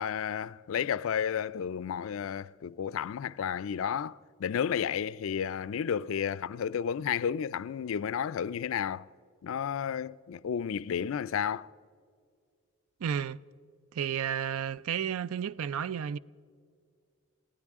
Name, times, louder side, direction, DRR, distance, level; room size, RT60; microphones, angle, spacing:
voice 1, 0.0-9.1 9.4-11.7, left 8 dB, 65° left, 0.3 m, -32 dB
voice 2, 13.0-13.4 13.9-16.2, right 8 dB, 75° right, 0.4 m, -32 dB
23.0 x 16.0 x 3.6 m
head